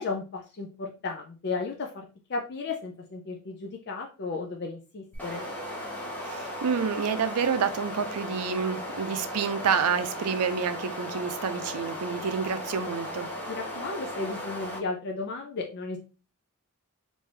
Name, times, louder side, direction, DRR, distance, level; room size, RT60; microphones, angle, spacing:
voice 1, 0.0-2.0 2.3-5.5 13.5-16.0, left 3 dB, 50° left, 0.4 m, -34 dB
sound 1, 5.1-14.8, left 1 dB, 5° left, 0.8 m, -36 dB
voice 2, 6.2-13.3, right 6 dB, 90° right, 0.5 m, -28 dB
3.2 x 2.6 x 3.2 m
head